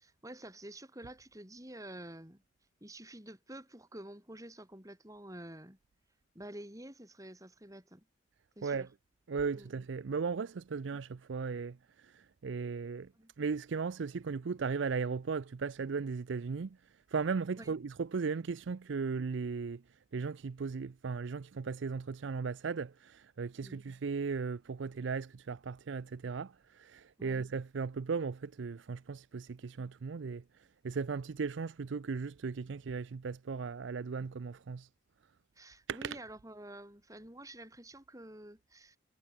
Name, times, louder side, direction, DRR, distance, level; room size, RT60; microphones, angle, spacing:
voice 1, 0.0-2.4 2.8-5.8 6.3-8.0 8.6-8.9 9.5-9.7 13.1-13.3 17.5-17.7 23.6-23.8 27.2-27.4 35.6-39.0, right 1 dB, 15° right, 5.6 m, -49 dB
voice 2, 9.3-13.1 13.4-16.8 17.1-19.8 20.1-30.4 30.8-34.9 35.9-36.2, right 5 dB, 70° right, 0.5 m, -37 dB
head